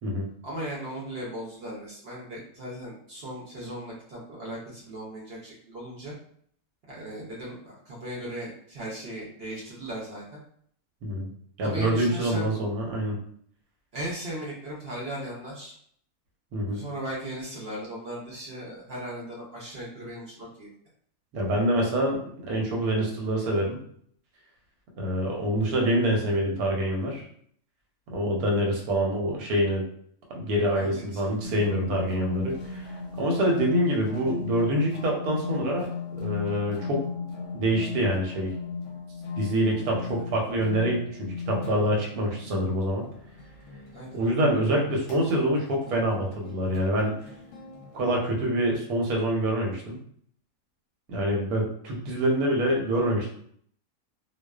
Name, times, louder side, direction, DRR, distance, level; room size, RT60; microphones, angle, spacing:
voice 1, 0.4-6.1 6.9-10.4 11.6-12.6 13.9-15.7 16.7-20.7 30.7-31.3 40.0-40.2 43.9-44.3, right 1 dB, 60° right, -4 dB, 0.7 m, -37 dB
voice 2, 11.6-13.2 16.5-16.8 21.3-23.8 25.0-27.2 28.1-29.8 30.3-32.9 33.2-35.9 36.2-37.0 37.5-38.5 39.4-43.1 44.1-47.2 47.9-50.0 51.1-53.3, right 1 dB, 90° right, 0 dB, 1.2 m, -26 dB
sound 1, 31.4-48.2, left 5 dB, 65° left, 0.8 m, -37 dB
2.3 x 2.3 x 2.2 m, 0.63 s
omnidirectional pair, 1.5 m